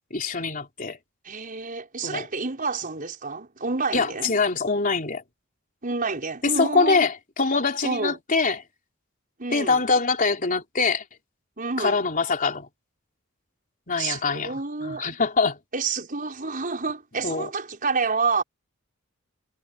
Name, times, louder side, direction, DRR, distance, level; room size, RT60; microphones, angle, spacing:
voice 1, 0.1-1.0 2.0-2.3 3.9-5.2 6.6-8.6 9.5-11.0 11.8-12.7 13.9-15.6 17.2-17.5, left 4 dB, 40° left, 3.6 m, -24 dB
voice 2, 1.2-4.3 5.8-7.1 7.8-8.2 9.4-9.8 11.6-12.0 14.0-15.1 15.7-18.4, right 4 dB, 40° right, 5.1 m, -29 dB
head